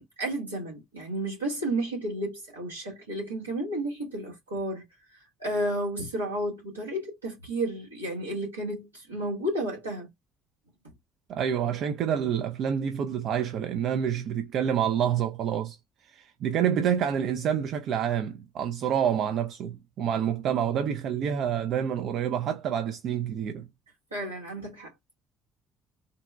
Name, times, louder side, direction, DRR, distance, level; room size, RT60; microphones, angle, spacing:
voice 1, 0.0-4.8 5.4-10.1 24.1-25.1, right 1 dB, 85° right, 1.3 m, -32 dB
voice 2, 11.3-15.8 16.1-23.7, right 8 dB, 55° right, 0.4 m, -28 dB
3.9 x 2.1 x 2.2 m
figure-of-eight pair, 50°, 0 cm